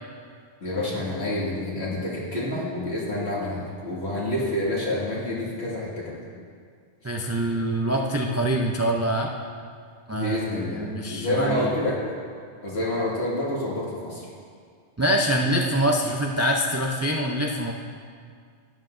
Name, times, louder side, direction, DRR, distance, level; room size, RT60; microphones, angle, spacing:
voice 1, 0.6-6.2 10.1-10.8 11.1-12.0 12.6-14.2, left 1 dB, 70° left, -6 dB, 2.3 m, -28 dB
voice 2, 7.0-9.3 10.1-10.4 10.6-11.7 15.0-17.7, right 1 dB, 25° right, 0 dB, 0.4 m, -24 dB
12.0 x 9.9 x 2.6 m, 2.1 s
omnidirectional pair, 1.1 m